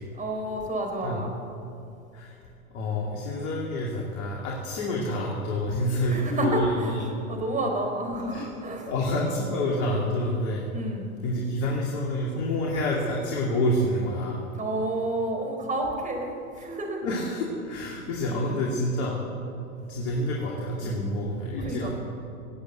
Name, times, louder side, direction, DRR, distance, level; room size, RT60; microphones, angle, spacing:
voice 1, 0.1-1.3 6.1-7.0 7.3-8.9 10.7-11.1 14.6-17.0 18.3-18.5 20.8-21.2 21.6-21.9, right 1 dB, 20° right, 2 dB, 4.0 m, -30 dB
voice 2, 2.7-7.0 8.3-8.5 8.9-10.6 11.2-14.4 17.0-19.2 19.8-21.9, left 1 dB, 55° left, -3 dB, 2.8 m, -28 dB
18.0 x 8.2 x 8.0 m, 2.7 s
hypercardioid pair, 105°, 43 cm